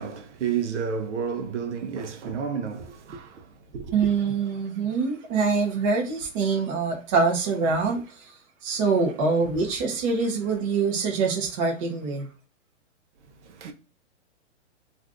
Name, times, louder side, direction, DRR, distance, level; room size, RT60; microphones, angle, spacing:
voice 1, 0.0-3.9 13.4-13.7, right 7 dB, 70° right, 0.7 m, -31 dB
voice 2, 3.9-8.0 8.6-12.3, right 4 dB, 30° right, 0.7 m, -24 dB
2.5 x 2.5 x 3.4 m
hypercardioid pair, 160°, 36 cm